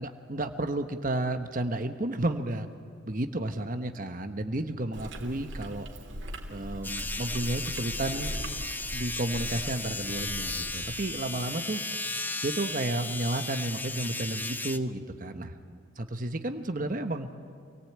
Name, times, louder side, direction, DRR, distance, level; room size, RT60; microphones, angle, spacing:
voice 1, 0.0-2.7 3.1-5.9 6.5-8.3 8.9-11.8 12.4-17.3, right 1 dB, 40° right, 7 dB, 1.1 m, -32 dB
Chewing mastication, 4.9-11.1, right 1 dB, 60° right, 2.8 m, -40 dB
sound 1, 6.8-14.8, left 2 dB, 10° left, 0.7 m, -35 dB
27.5 x 18.5 x 8.7 m, 2.3 s
head